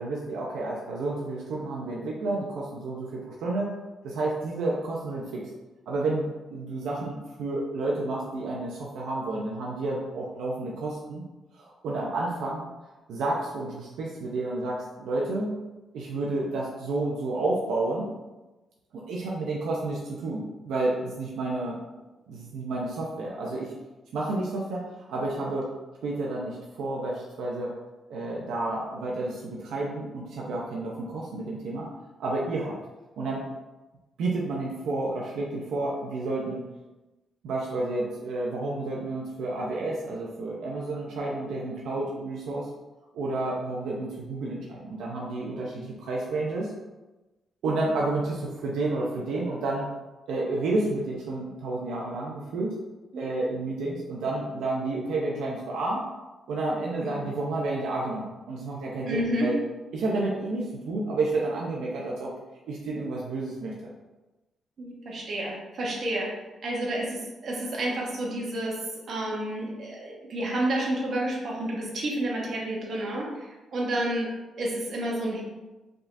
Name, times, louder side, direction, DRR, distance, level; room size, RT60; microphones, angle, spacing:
voice 1, 0.0-3.7 4.0-5.4 5.9-11.2 11.5-12.7 13.1-15.5 15.9-18.1 18.9-21.8 22.3-23.7 24.1-24.8 25.1-25.7 26.0-27.7 28.1-31.9 32.2-32.7 33.2-33.5 34.2-36.6 37.4-42.7 43.1-46.7 47.6-49.9 50.3-52.8 53.2-56.0 56.5-59.6 59.9-62.3 62.7-63.7, right 2 dB, 90° right, -3 dB, 0.7 m, -30 dB
voice 2, 59.0-59.5 60.1-60.2 64.8-66.3 66.6-68.8 69.1-74.3 74.6-75.4, right 1 dB, 55° right, -3 dB, 1.2 m, -30 dB
4.8 x 3.7 x 2.6 m, 1.1 s
cardioid pair, 135°, 0 cm